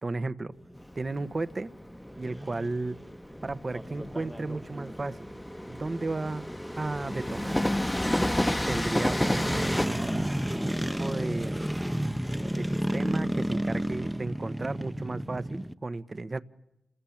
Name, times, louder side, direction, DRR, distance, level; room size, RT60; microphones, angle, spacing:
voice 1, 0.0-0.5 0.9-1.7 2.2-3.0 3.4-5.4 5.7-6.4 6.7-7.6 8.7-10.4 10.6-11.7 12.6-16.4, right 3 dB, 40° right, 1.2 m, -34 dB
sound 1, 0.5-15.7, equal, 5° right, 1.0 m, -33 dB
Train, 0.8-9.9, left 1 dB, 15° left, 1.1 m, -31 dB
28.5 x 20.5 x 8.8 m
cardioid pair, 45°, 0 cm